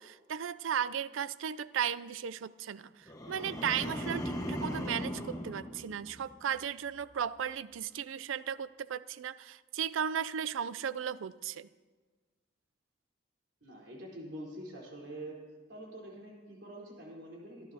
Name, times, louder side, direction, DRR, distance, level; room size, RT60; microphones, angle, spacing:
voice 1, 0.0-11.7, right 8 dB, 90° right, 17 dB, 0.4 m, -36 dB
sound 1, 3.1-6.5 6.9-7.3, equal, 20° left, 1.3 m, -39 dB
voice 2, 13.6-15.4 15.7-17.7, right 1 dB, 65° right, -3 dB, 3.9 m, -45 dB
26.0 x 11.5 x 2.8 m, 1.4 s
head